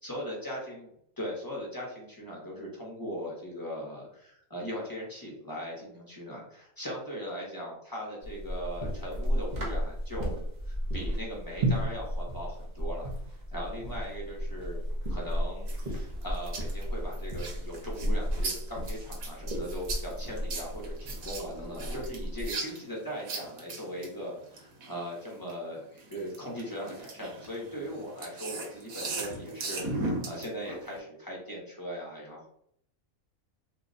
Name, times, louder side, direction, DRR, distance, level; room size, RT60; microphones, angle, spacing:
voice 1, 0.0-0.9 1.2-10.4 10.6-13.1 13.5-14.8 15.1-29.8 30.2-32.5, equal, 20° left, -4 dB, 0.7 m, -39 dB
sound 1, 8.2-22.5, equal, 40° right, 0.7 m, -33 dB
sound 2, 15.7-25.5 26.0-31.0, right 3 dB, 85° right, 1.2 m, -38 dB
2.7 x 2.2 x 3.8 m, 0.70 s
omnidirectional pair, 1.4 m